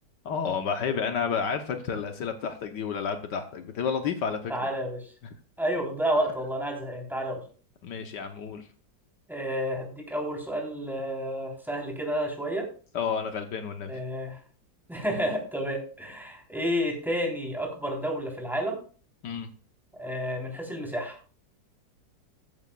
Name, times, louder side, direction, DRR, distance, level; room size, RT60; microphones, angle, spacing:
voice 1, 0.2-4.7 5.2-5.3 7.8-8.7 12.9-14.0 19.2-19.5, left 6 dB, 70° left, 7 dB, 1.6 m, -31 dB
voice 2, 4.5-5.0 5.6-7.4 9.3-12.7 13.9-14.4 14.9-18.8 20.0-21.2, equal, ahead, -1 dB, 3.6 m, -30 dB
14.0 x 10.5 x 2.4 m, 0.39 s
omnidirectional pair, 2.0 m